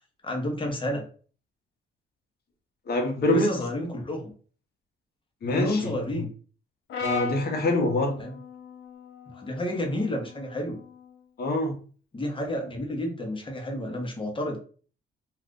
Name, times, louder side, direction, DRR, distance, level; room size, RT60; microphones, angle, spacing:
voice 1, 0.2-1.0 3.3-4.3 5.5-6.3 8.2-8.3 9.3-10.8 12.1-14.6, left 1 dB, 25° left, 1 dB, 1.0 m, -30 dB
voice 2, 2.9-3.6 5.4-6.2 7.0-8.1 11.4-11.8, left 1 dB, 50° left, 3 dB, 1.0 m, -25 dB
Brass instrument, 6.9-11.1, left 5 dB, 75° left, 0.7 m, -38 dB
2.5 x 2.4 x 3.6 m, 0.41 s
cardioid pair, 90°, 20 cm